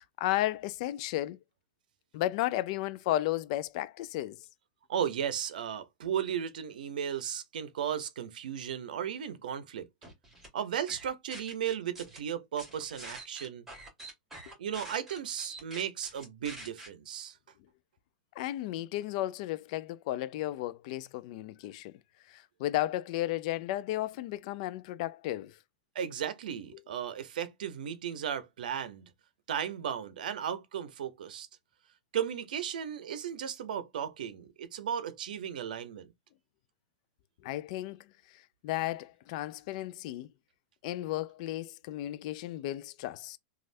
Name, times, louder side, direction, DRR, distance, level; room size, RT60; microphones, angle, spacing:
voice 1, 0.0-1.4 2.1-4.4 18.4-22.0 22.3-25.6 37.4-38.0 38.6-40.3 40.8-43.4, left 15 dB, 55° left, 0.3 m, -34 dB
voice 2, 4.9-9.9 10.5-13.7 14.6-17.4 25.9-29.1 29.5-31.5 32.1-36.1, right 9 dB, 85° right, 0.6 m, -35 dB
sound 1, 10.0-10.5 10.9-12.2 12.6-16.9, right 2 dB, 5° right, 1.6 m, -46 dB
3.2 x 2.3 x 2.5 m
supercardioid pair, 140°, 5 cm